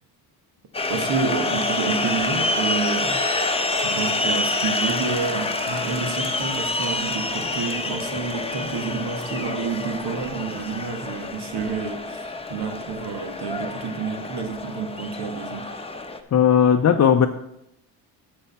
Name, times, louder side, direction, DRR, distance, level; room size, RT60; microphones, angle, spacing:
sound 1, 0.7-16.2, left 2 dB, 15° left, 0.9 m, -27 dB
voice 1, 0.9-3.2 3.8-12.2 12.5-15.7, right 5 dB, 70° right, 5 dB, 1.6 m, -29 dB
voice 2, 16.3-17.3, left 8 dB, 40° left, 4 dB, 0.6 m, -16 dB
6.9 x 6.5 x 5.6 m, 0.81 s
supercardioid pair, 70°, 42 cm